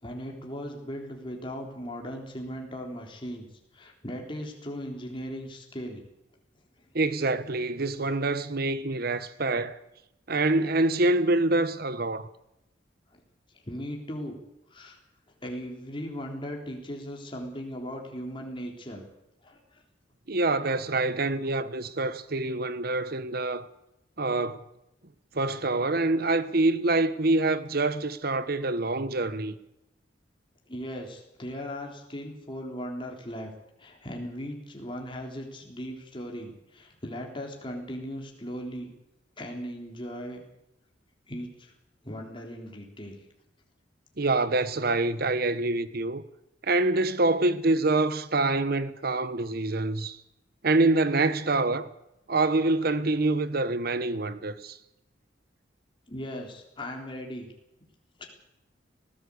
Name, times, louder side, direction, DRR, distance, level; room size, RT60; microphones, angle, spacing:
voice 1, 0.0-3.5 3.7-6.0 13.7-14.4 14.7-15.0 15.4-19.1 19.4-19.6 30.7-33.5 33.8-38.9 39.4-40.4 41.3-41.7 42.0-43.2 56.1-57.5 58.2-58.3, equal, 25° left, 3.6 m, -38 dB
voice 2, 6.9-9.8 10.3-12.3 20.3-23.7 24.2-24.6 25.3-29.6 44.2-46.2 46.6-50.2 50.6-51.9 52.3-54.8, right 2 dB, 55° right, 1.1 m, -26 dB
19.5 x 16.0 x 8.5 m
head